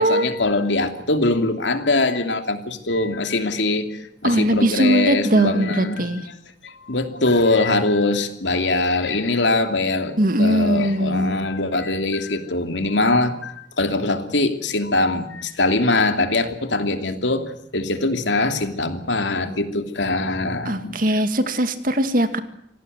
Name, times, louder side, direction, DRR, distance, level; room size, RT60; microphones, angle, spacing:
voice 1, 0.0-6.1 6.6-21.0, left 2 dB, 85° left, 7 dB, 2.7 m, -22 dB
voice 2, 4.2-6.3 10.2-11.3 20.7-22.4, right 1 dB, 50° right, 9 dB, 2.2 m, -20 dB
26.5 x 18.0 x 8.0 m, 0.75 s
head